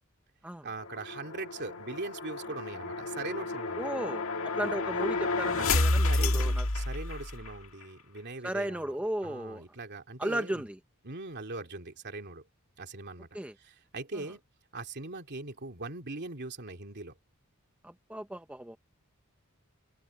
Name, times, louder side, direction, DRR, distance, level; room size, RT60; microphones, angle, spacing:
voice 1, 0.6-3.9 4.5-4.7 6.1-8.9 9.2-10.7 11.0-12.4 12.8-13.3 13.6-14.4 14.7-17.1, right 3 dB, 55° right, 3.0 m, -41 dB
sound 1, 0.8-7.6, left 2 dB, 65° left, 2.0 m, -30 dB
voice 2, 3.8-4.3 4.5-6.7 8.4-9.6 10.2-10.8 13.3-13.5 17.8-18.8, right 1 dB, 5° right, 0.7 m, -35 dB
head